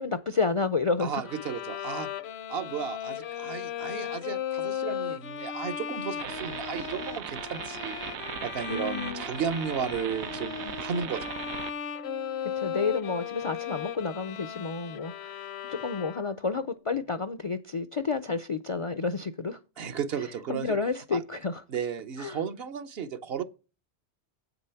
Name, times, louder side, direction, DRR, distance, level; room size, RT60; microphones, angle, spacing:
voice 1, 0.0-1.3 8.7-9.2 12.6-19.6 20.5-21.6 22.2-22.4, left 4 dB, 50° left, 0.4 m, -30 dB
voice 2, 1.0-2.1 2.5-8.0 8.4-11.3 19.8-20.8 21.1-21.2 21.7-23.4, right 7 dB, 65° right, 1.0 m, -34 dB
Bowed string instrument, 1.2-16.5, left 9 dB, 75° left, 0.9 m, -36 dB
sound 1, 6.2-11.7, right 9 dB, 85° right, 1.0 m, -38 dB
8.2 x 6.7 x 5.7 m
omnidirectional pair, 1.1 m